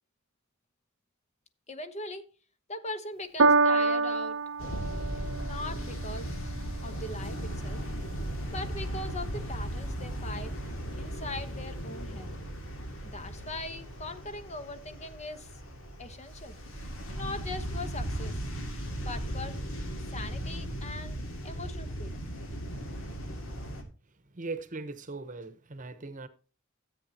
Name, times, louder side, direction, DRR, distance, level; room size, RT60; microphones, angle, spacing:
voice 1, 1.7-2.2 2.7-4.4 5.4-6.5 6.8-7.8 8.5-10.5 11.0-12.3 13.0-15.6 16.0-16.6 17.1-18.4 19.1-19.6 20.1-21.2 21.4-22.3, left 2 dB, 35° left, 1.1 m, -40 dB
Piano, 3.4-10.0 10.8-10.9, right 3 dB, 70° right, 0.7 m, -30 dB
sound 1, 4.6-23.8, right 1 dB, 75° left, 2.4 m, -37 dB
voice 2, 24.3-26.3, right 3 dB, 40° right, 1.0 m, -39 dB
14.0 x 8.4 x 2.9 m
head